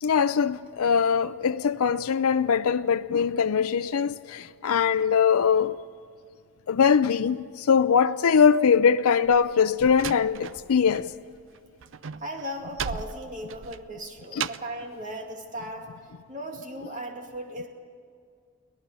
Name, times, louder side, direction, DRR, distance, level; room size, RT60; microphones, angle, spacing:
voice 1, 0.0-5.8 6.7-11.1 14.3-14.5 16.8-16.9, left 6 dB, 80° left, 0.5 m, -22 dB
Slam, 9.2-11.1 11.3-14.8, right 7 dB, 60° right, 0.5 m, -37 dB
voice 2, 12.2-15.9 16.3-17.7, right 1 dB, 35° right, 2.5 m, -37 dB
23.5 x 17.5 x 6.9 m
head